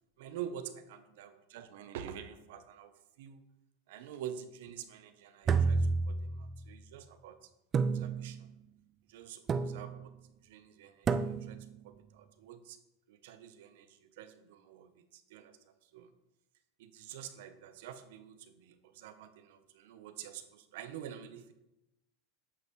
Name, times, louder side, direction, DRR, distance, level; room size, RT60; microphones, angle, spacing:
voice 1, 0.2-3.4 3.9-7.5 7.9-8.5 9.1-10.1 10.4-12.8 13.1-15.6 15.9-16.1 16.8-21.5, right 9 dB, 70° right, 10 dB, 0.7 m, -47 dB
sound 1, 5.5-6.7 7.7-8.5 9.5-10.1 11.1-11.7, right 5 dB, 30° right, 0.4 m, -31 dB
8.4 x 5.3 x 3.1 m, 0.89 s
supercardioid pair, 115°, 0 cm